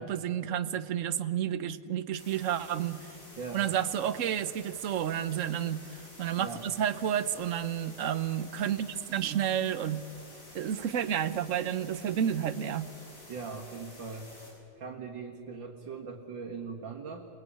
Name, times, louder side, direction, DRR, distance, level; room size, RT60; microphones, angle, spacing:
voice 1, 0.0-3.0 3.5-10.0 10.5-12.9, right 9 dB, 55° right, 13 dB, 1.0 m, -31 dB
sound 1, 2.2-14.5, left 1 dB, 45° left, 7.2 m, -51 dB
voice 2, 13.3-14.3 14.8-17.3, right 5 dB, 85° right, 1 dB, 2.4 m, -40 dB
27.5 x 21.5 x 8.7 m, 2.8 s
omnidirectional pair, 2.0 m